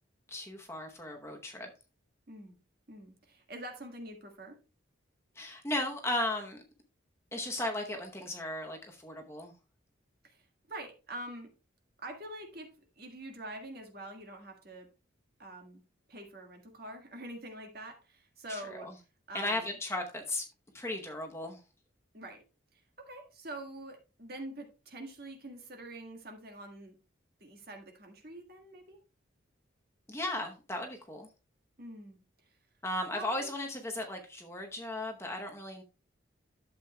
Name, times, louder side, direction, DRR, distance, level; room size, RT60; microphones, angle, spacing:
voice 1, 0.3-1.7 5.4-6.6 7.3-9.5 18.5-18.9 19.3-20.5 20.7-21.6 30.1-31.3 32.8-35.8, left 1 dB, 15° left, 0.8 m, -36 dB
voice 2, 2.9-4.6 10.2-10.4 10.7-11.5 12.0-14.9 15.4-15.8 16.1-18.9 19.3-19.7 22.1-22.4 22.7-26.9 27.4-29.0 31.8-32.2 33.1-33.5, right 1 dB, 50° right, 1.6 m, -45 dB
11.5 x 7.4 x 2.2 m
head